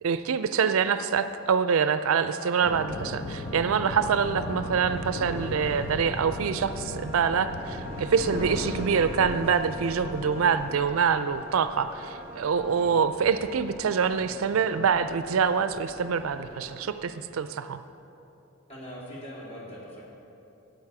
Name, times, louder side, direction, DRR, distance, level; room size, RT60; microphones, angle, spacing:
voice 1, 0.0-17.8, right 6 dB, 70° right, 11 dB, 0.4 m, -25 dB
Wind instrument woodwind instrument, 2.3-12.9, left 1 dB, 5° right, 1.1 m, -47 dB
sound 1, 2.6-9.4, left 2 dB, 80° left, 0.7 m, -38 dB
sound 2, 2.7-16.8, equal, 45° left, 2.5 m, -41 dB
voice 2, 18.7-20.1, equal, 30° left, -5 dB, 2.7 m, -42 dB
16.0 x 6.4 x 4.8 m, 2.8 s
head